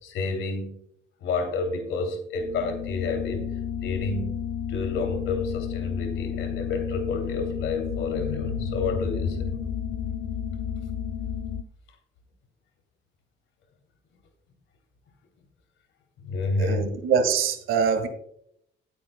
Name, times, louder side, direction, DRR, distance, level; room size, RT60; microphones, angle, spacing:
voice 1, 0.0-0.8 1.2-3.5 3.8-4.4 4.7-9.5 16.2-16.9, left 3 dB, 80° left, 4 dB, 2.7 m, -29 dB
sound 1, 2.4-11.6, left 8 dB, 65° left, 0.6 m, -32 dB
voice 2, 16.6-18.1, right 6 dB, 85° right, 8 dB, 1.6 m, -24 dB
18.0 x 8.0 x 2.2 m, 0.72 s
cardioid pair, 90°, 20 cm